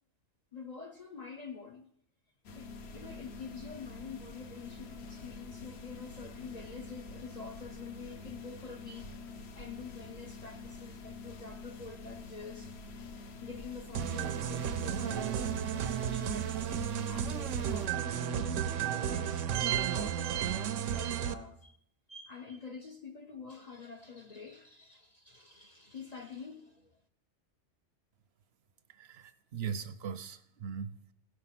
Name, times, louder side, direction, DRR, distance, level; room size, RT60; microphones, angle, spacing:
voice 1, 0.5-1.8 2.5-9.1 9.5-12.7 13.2-19.5 19.9-21.8 22.1-27.0, left 5 dB, 45° left, 0.6 m, -47 dB
sound 1, 2.4-17.9, left 3 dB, 60° left, 1.0 m, -47 dB
sound 2, 13.9-21.3, right 9 dB, 90° right, 1.0 m, -33 dB
voice 2, 28.9-31.1, right 7 dB, 65° right, 0.7 m, -40 dB
16.5 x 5.6 x 5.8 m
omnidirectional pair, 1.3 m